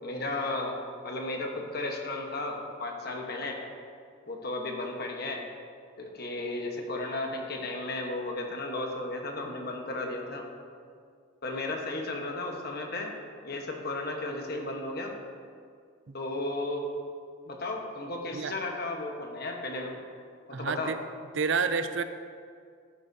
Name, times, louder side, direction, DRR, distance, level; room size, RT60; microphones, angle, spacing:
voice 1, 0.0-3.6 4.3-5.4 6.0-10.4 11.4-13.1 13.4-15.1 16.1-16.9 17.5-20.0 20.5-20.9, left 2 dB, 55° left, 1 dB, 1.2 m, -34 dB
voice 2, 20.5-21.0 21.3-22.0, right 5 dB, 65° right, 10 dB, 0.5 m, -29 dB
12.0 x 9.7 x 2.8 m, 2.1 s
head